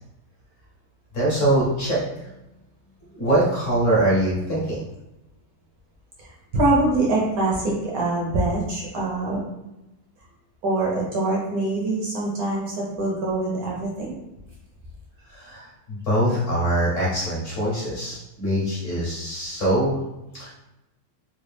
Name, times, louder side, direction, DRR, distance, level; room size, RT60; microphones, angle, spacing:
voice 1, 1.1-2.0 3.1-4.9 15.3-20.0 20.3-20.5, right 1 dB, 55° left, -6 dB, 0.9 m, -23 dB
voice 2, 6.2-9.4 10.6-14.1, right 2 dB, 60° right, -3 dB, 1.0 m, -24 dB
3.8 x 2.2 x 3.4 m, 0.93 s
omnidirectional pair, 2.3 m